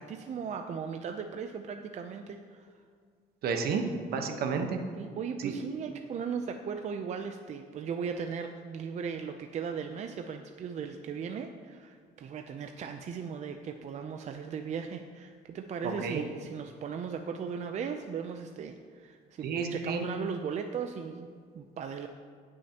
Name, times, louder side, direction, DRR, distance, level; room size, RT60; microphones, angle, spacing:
voice 1, 0.0-2.7 5.0-21.3 21.5-22.1, right 6 dB, 45° right, 5 dB, 0.5 m, -37 dB
voice 2, 3.4-3.8 4.1-4.8 5.4-5.6 16.0-16.2 19.4-20.0, right 5 dB, 65° right, 5 dB, 1.1 m, -31 dB
16.0 x 6.4 x 2.9 m, 2.1 s
cardioid pair, 110°, 17 cm